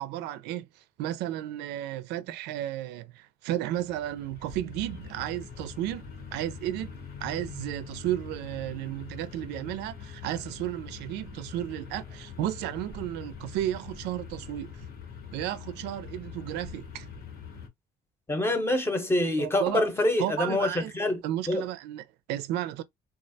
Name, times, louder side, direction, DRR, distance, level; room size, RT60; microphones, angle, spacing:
voice 1, 0.0-14.8 15.3-17.1 19.4-19.8 20.2-20.9 21.2-22.8, right 13 dB, 90° right, 0.4 m, -33 dB
sound 1, 3.6-17.7, left 6 dB, 65° left, 1.0 m, -43 dB
voice 2, 18.3-21.2 21.5-21.6, left 1 dB, 15° left, 0.7 m, -26 dB
2.3 x 2.0 x 2.6 m
cardioid pair, 110°, 17 cm